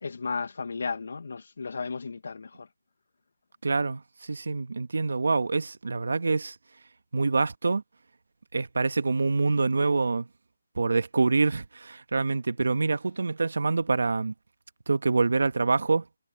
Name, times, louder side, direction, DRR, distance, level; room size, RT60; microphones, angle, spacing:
voice 1, 0.0-2.7, left 4 dB, 55° left, 0.7 m, -34 dB
voice 2, 3.6-6.5 7.1-7.8 8.5-10.3 10.8-14.3 14.9-16.0, right 3 dB, 70° right, 1.3 m, -26 dB
hypercardioid pair, 175°, 0 cm